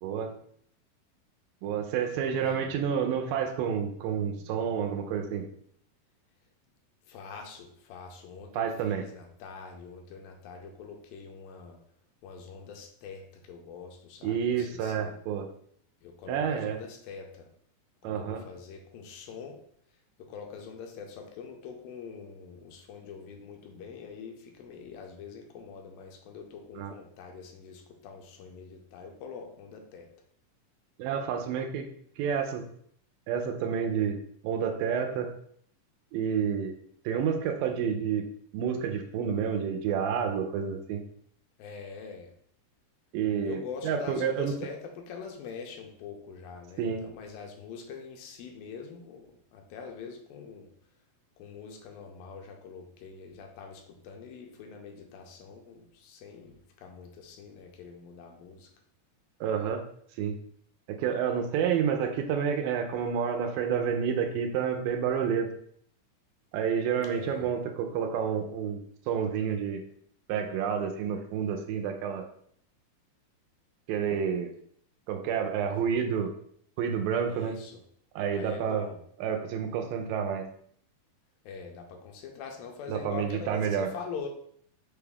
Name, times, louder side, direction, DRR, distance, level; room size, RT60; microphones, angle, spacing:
voice 1, 0.0-0.3 1.6-5.5 8.5-9.0 14.2-15.5 16.3-16.8 18.0-18.4 26.8-26.9 31.0-31.9 32.2-32.6 33.3-34.2 34.4-35.3 36.1-36.7 37.1-38.2 38.5-41.0 43.1-43.6 43.8-44.5 46.8-47.0 59.4-59.8 60.2-60.3 60.9-65.5 66.5-68.8 69.1-69.8 70.3-72.3 73.9-74.5 75.1-76.3 76.8-77.5 78.2-78.9 79.2-80.5 82.9-83.9, right 7 dB, 85° right, 4 dB, 2.3 m, -29 dB
voice 2, 7.1-11.8 12.2-15.1 16.0-17.5 18.0-19.6 20.2-30.1 41.6-42.3 43.4-50.7 51.4-58.7 67.0-67.5 75.7-76.0 77.3-77.8 78.3-79.0 81.4-84.3, left 6 dB, 85° left, 3 dB, 2.4 m, -44 dB
5.9 x 2.3 x 3.4 m, 0.64 s
omnidirectional pair, 4.0 m